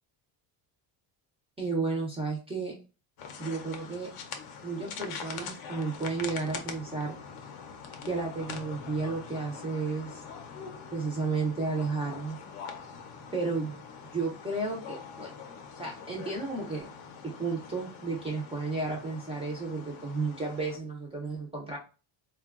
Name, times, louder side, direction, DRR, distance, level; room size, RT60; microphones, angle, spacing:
voice 1, 1.6-2.7 3.4-4.1 4.6-7.2 8.0-10.2 10.9-12.4 13.3-13.8 14.1-15.3 15.8-16.9 17.2-21.8, right 3 dB, 15° right, -3 dB, 0.4 m, -32 dB
sound 1, 3.2-20.8, left 6 dB, 55° left, 0.5 m, -44 dB
3.6 x 2.2 x 2.3 m, 0.33 s
cardioid pair, 155°, 46 cm